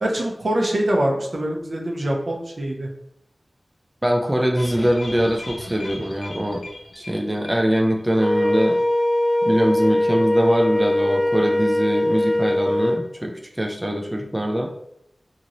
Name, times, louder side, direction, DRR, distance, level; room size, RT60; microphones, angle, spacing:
voice 1, 0.0-2.9, right 1 dB, 60° right, 0 dB, 0.6 m, -24 dB
voice 2, 4.0-6.6 7.0-8.8 9.4-14.7, equal, 15° right, 0 dB, 0.4 m, -22 dB
sound 1, 4.6-8.0 8.3-8.4 8.7-8.8, left 1 dB, 80° left, 0.6 m, -38 dB
Wind instrument woodwind instrument, 8.1-13.0, left 1 dB, 85° right, 1.0 m, -21 dB
2.9 x 2.9 x 2.5 m, 0.75 s
wide cardioid pair, 55°, 0 cm